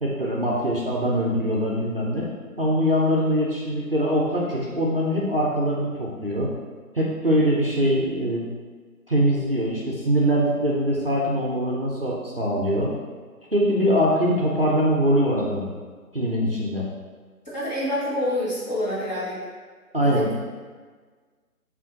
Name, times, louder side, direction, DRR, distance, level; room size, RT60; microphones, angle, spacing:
voice 1, 0.0-2.3 2.6-6.5 6.9-8.5 9.1-12.9 13.5-15.7 16.1-16.9 19.9-20.3, equal, 40° right, -5 dB, 0.5 m, -23 dB
voice 2, 17.5-19.4 20.0-20.3, left 1 dB, 30° left, -9 dB, 1.1 m, -27 dB
6.9 x 2.5 x 2.6 m, 1.5 s
figure-of-eight pair, 160°, 45 cm